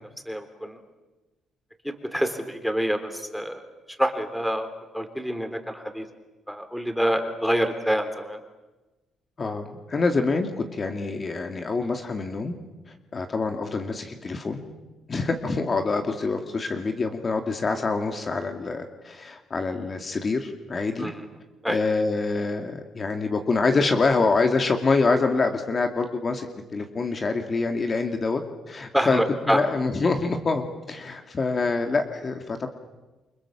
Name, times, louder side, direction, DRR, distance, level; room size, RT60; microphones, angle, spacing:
voice 1, 0.3-0.8 1.8-3.6 4.0-4.7 4.9-6.1 6.5-8.4 21.0-21.3 21.6-21.8 28.9-29.6, equal, ahead, 8 dB, 3.6 m, -26 dB
voice 2, 9.4-12.5 13.1-14.6 15.1-21.1 21.7-26.5 26.7-28.4 28.7-29.2 29.5-32.7, left 3 dB, 40° left, 5 dB, 2.3 m, -26 dB
29.0 x 24.5 x 7.4 m, 1.1 s
cardioid pair, 90°, 0 cm